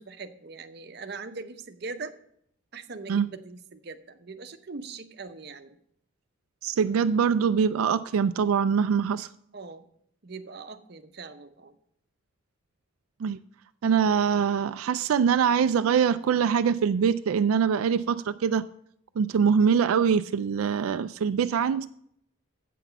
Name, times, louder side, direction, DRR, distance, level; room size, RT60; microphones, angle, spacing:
voice 1, 0.0-2.1 2.7-5.8 9.5-9.9 10.2-11.7, right 4 dB, 50° right, 8 dB, 0.7 m, -41 dB
voice 2, 6.6-9.3 13.2-13.4 13.8-18.6 19.2-21.9, right 7 dB, 90° right, 12 dB, 0.3 m, -23 dB
8.3 x 5.9 x 6.7 m, 0.69 s
head